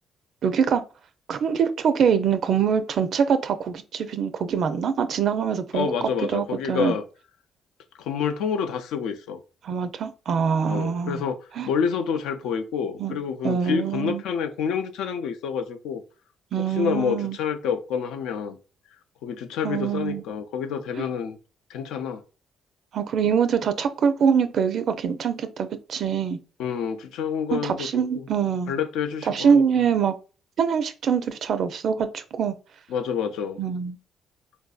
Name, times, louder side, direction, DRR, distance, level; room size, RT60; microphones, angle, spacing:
voice 1, 0.4-0.8 1.3-5.9 6.3-7.0 9.6-11.2 11.6-11.7 13.0-13.2 13.4-14.2 16.5-17.4 19.6-20.2 21.0-21.1 22.9-26.4 27.5-28.7 29.3-30.1 30.6-32.5 33.6-34.0, right 7 dB, 65° right, 0.4 m, -24 dB
voice 2, 5.7-7.0 8.0-9.4 10.6-11.4 11.6-16.0 16.6-18.6 19.2-21.4 21.7-22.2 26.6-27.9 28.2-28.3 28.7-29.6 32.9-33.6, left 7 dB, 90° left, 0.4 m, -28 dB
4.0 x 2.6 x 2.3 m
cardioid pair, 90°, 0 cm